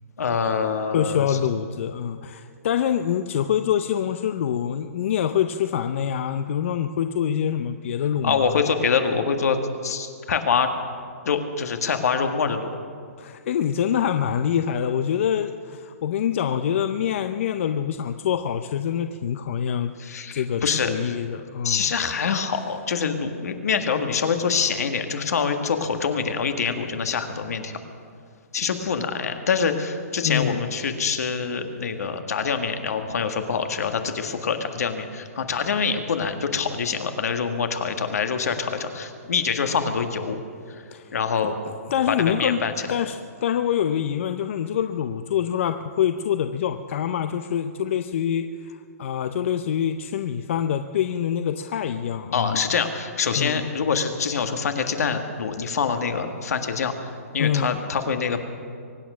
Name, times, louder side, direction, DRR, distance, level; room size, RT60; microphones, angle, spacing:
voice 1, 0.2-1.4 8.2-10.7 11.3-12.6 20.0-21.2 21.6-27.7 28.5-40.4 40.7-40.8 41.1-41.6 42.1-42.7 52.3-58.4, left 6 dB, 75° left, 7 dB, 1.7 m, -25 dB
voice 2, 0.9-8.6 13.2-19.9 20.3-21.9 30.2-30.7 40.9-41.1 41.4-41.5 41.9-42.6 42.9-52.7 53.4-53.7 57.4-57.8, left 9 dB, 50° left, 8 dB, 0.6 m, -25 dB
23.5 x 9.4 x 6.2 m, 2.2 s
hypercardioid pair, 160°, 8 cm